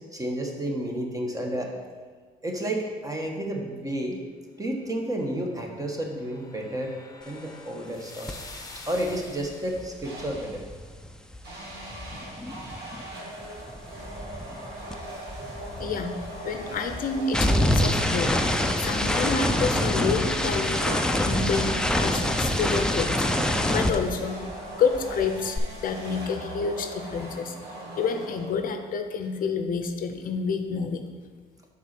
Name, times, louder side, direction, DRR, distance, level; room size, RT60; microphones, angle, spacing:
voice 1, 0.1-1.8 2.4-4.2 4.6-6.9 7.3-8.4 8.9-10.6, right 1 dB, 20° right, 1 dB, 1.3 m, -31 dB
sound 1, 5.4-10.0, left 3 dB, 20° left, 1.0 m, -47 dB
sound 2, 8.3-8.5 8.8-13.1 13.4-24.7 24.9-25.6, left 1 dB, 5° left, 0.5 m, -26 dB
sound 3, 10.0-10.7 11.4-28.8, right 1 dB, 75° right, 2.0 m, -40 dB
voice 2, 15.8-16.2 16.4-18.3 18.8-23.3 23.7-24.4 24.7-27.6 28.0-31.0, left 5 dB, 55° left, 6 dB, 0.7 m, -29 dB
6.0 x 4.1 x 6.0 m, 1.5 s
supercardioid pair, 80°, 17 cm